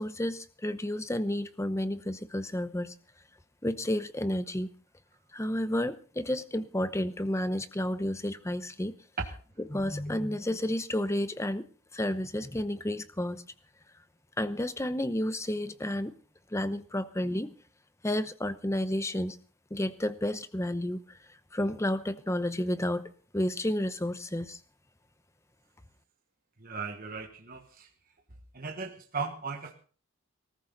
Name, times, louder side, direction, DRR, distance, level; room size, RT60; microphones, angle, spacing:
voice 1, 0.0-2.9 3.6-4.7 5.3-9.0 9.7-11.7 11.9-13.4 14.4-16.1 16.5-17.5 18.0-19.4 19.7-21.2 21.5-24.6, left 1 dB, 15° left, 13 dB, 0.7 m, -31 dB
voice 2, 26.6-27.9 28.5-29.7, right 4 dB, 40° right, 3 dB, 1.4 m, -36 dB
19.0 x 14.0 x 3.9 m, 0.40 s
head